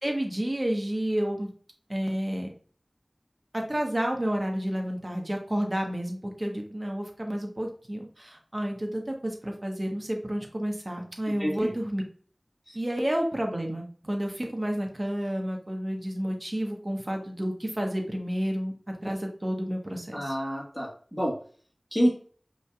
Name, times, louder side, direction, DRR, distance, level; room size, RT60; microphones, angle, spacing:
voice 1, 0.0-1.5 1.9-2.5 3.5-12.0 12.7-20.3, equal, 40° right, 2 dB, 1.0 m, -30 dB
voice 2, 11.3-11.7 12.7-12.8 20.1-21.3 21.9-22.1, equal, 10° left, -4 dB, 1.5 m, -28 dB
5.3 x 3.3 x 2.3 m, 0.44 s
wide cardioid pair, 45°, 0 cm